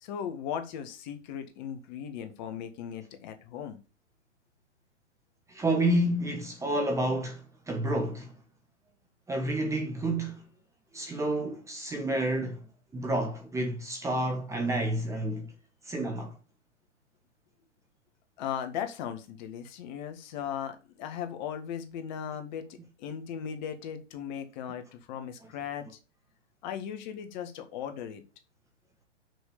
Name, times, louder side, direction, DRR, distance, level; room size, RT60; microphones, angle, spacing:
voice 1, 0.0-3.8 18.4-22.7 23.0-26.0 26.6-28.2, left 8 dB, 40° left, 1.7 m, -37 dB
voice 2, 5.5-8.3 9.3-10.5 10.9-12.6 12.9-15.5 15.8-16.3, right 1 dB, 10° right, 1.1 m, -29 dB
6.2 x 5.1 x 6.8 m
hypercardioid pair, 125°, 36 cm